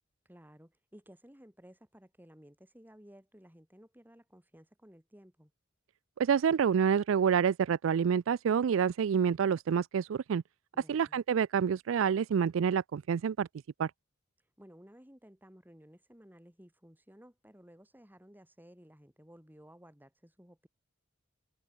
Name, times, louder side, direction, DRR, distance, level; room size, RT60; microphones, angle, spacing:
voice 1, 0.2-5.5 10.7-11.2 14.6-20.7, equal, 10° right, 6.8 m, -56 dB
voice 2, 6.2-10.4 10.9-13.5 13.8-13.9, right 7 dB, 70° right, 0.4 m, -28 dB
open air
head